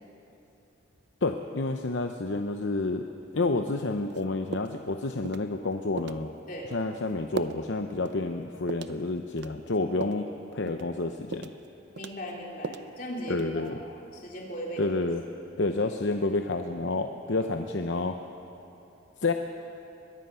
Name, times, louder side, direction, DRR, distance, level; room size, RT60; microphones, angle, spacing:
voice 1, 1.2-3.0 3.3-6.3 6.7-11.5 13.3-13.8 14.8-15.2 15.6-18.2 19.2-19.3, left 3 dB, 65° left, 6 dB, 0.8 m, -29 dB
sound 1, 4.1-4.2 4.5-4.9 5.2-5.5 6.0-6.2 6.7-6.9 7.4-7.6 8.0-8.2 8.7-9.0 9.4-10.3 10.7-10.9 11.3-11.7 12.0-12.9 13.3-13.7, right 4 dB, 60° right, 0.6 m, -38 dB
voice 2, 11.9-14.8, equal, 45° left, -2 dB, 3.6 m, -38 dB
22.5 x 22.0 x 5.7 m, 2.9 s
head